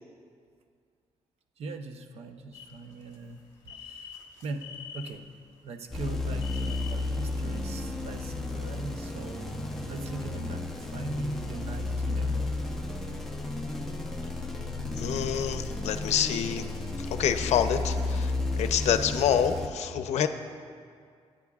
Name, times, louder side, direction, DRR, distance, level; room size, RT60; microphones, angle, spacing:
voice 1, 1.6-5.3 5.6-12.5, right 3 dB, 65° right, 6 dB, 0.8 m, -41 dB
sound 1, 2.5-5.7 6.1-7.3 7.6-7.7, left 7 dB, 30° left, 1.7 m, -46 dB
sound 2, 5.9-19.7, left 2 dB, 5° left, 0.9 m, -33 dB
voice 2, 13.8-20.3, left 9 dB, 85° left, 8 dB, 0.7 m, -28 dB
25.5 x 9.5 x 2.4 m, 2.2 s
cardioid pair, 170°, 11 cm